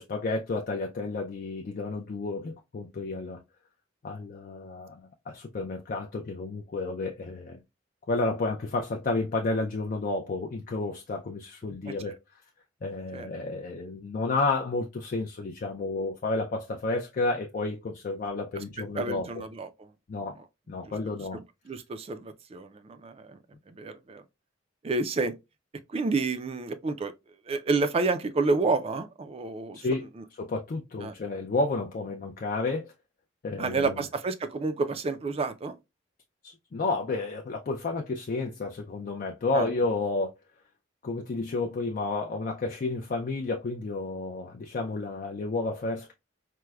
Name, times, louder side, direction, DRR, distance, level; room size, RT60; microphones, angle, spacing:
voice 1, 0.0-3.4 4.0-7.6 8.1-12.2 12.8-19.4 20.1-20.4 20.7-21.4 29.7-30.1 30.4-32.9 33.4-34.0 36.4-40.3 41.0-46.1, left 3 dB, 45° left, 0.4 m, -31 dB
voice 2, 19.0-19.9 21.3-23.4 23.7-24.2 24.8-25.3 25.9-27.1 27.5-29.8 31.0-31.1 33.6-35.7 39.5-39.7, right 3 dB, 30° right, 0.3 m, -29 dB
4.4 x 2.1 x 2.2 m
head